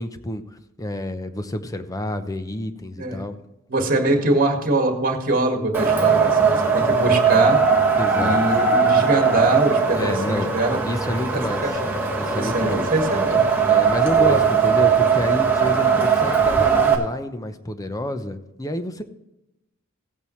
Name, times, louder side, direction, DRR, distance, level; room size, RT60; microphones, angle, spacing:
voice 1, 0.0-3.3 8.0-8.4 10.0-10.5 10.8-11.6 12.2-12.9 13.7-19.0, left 1 dB, 15° left, 9 dB, 0.7 m, -29 dB
voice 2, 3.7-7.6 8.2-10.8 11.3-11.8 12.3-13.4 14.2-14.4, right 2 dB, 40° right, 3 dB, 1.8 m, -23 dB
Wind, 5.7-17.0, right 5 dB, 10° right, 1.7 m, -19 dB
16.5 x 8.8 x 3.2 m, 0.91 s
head